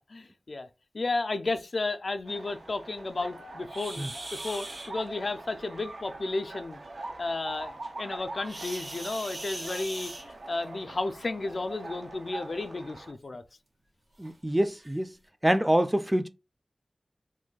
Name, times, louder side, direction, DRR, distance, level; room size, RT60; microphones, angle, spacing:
voice 1, 0.1-0.7 0.9-6.8 7.2-13.4, left 3 dB, 70° left, 0.3 m, -33 dB
sound 1, 2.2-13.1, right 2 dB, 90° right, 0.5 m, -43 dB
sound 2, 3.7-4.9 8.4-10.7 11.9-12.1 12.7-12.8 13.3-13.4 14.2-14.3 14.8-15.0, right 2 dB, 70° right, 0.9 m, -40 dB
voice 2, 14.2-15.1 15.4-16.3, right 1 dB, 15° right, 0.3 m, -25 dB
2.5 x 2.2 x 3.7 m
wide cardioid pair, 50°, 0 cm